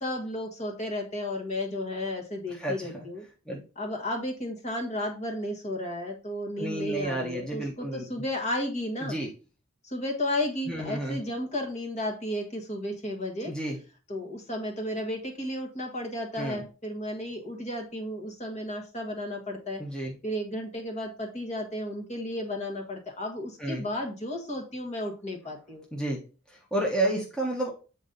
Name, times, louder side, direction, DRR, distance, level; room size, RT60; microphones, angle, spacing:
voice 1, 0.0-3.2 3.8-9.1 9.8-13.5 14.1-19.8 20.2-25.8, left 1 dB, 30° left, 2 dB, 1.5 m, -33 dB
voice 2, 2.5-3.1 3.5-3.6 6.6-8.1 9.0-9.3 10.7-11.2 13.4-13.8 16.4-16.6 19.8-20.1 23.6-23.8 25.9-26.2 26.5-27.7, right 1 dB, 5° left, -3 dB, 1.0 m, -31 dB
8.4 x 4.1 x 3.9 m, 0.34 s
head